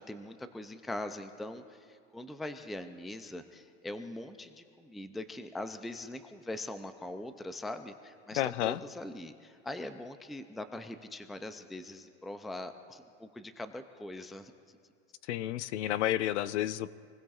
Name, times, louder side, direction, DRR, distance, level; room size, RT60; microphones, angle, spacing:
voice 1, 0.0-14.8, left 1 dB, ahead, 9 dB, 0.3 m, -42 dB
voice 2, 8.4-8.8 15.3-16.9, left 13 dB, 75° left, 16 dB, 0.6 m, -31 dB
26.5 x 20.0 x 2.4 m, 2.2 s
supercardioid pair, 130°, 35 cm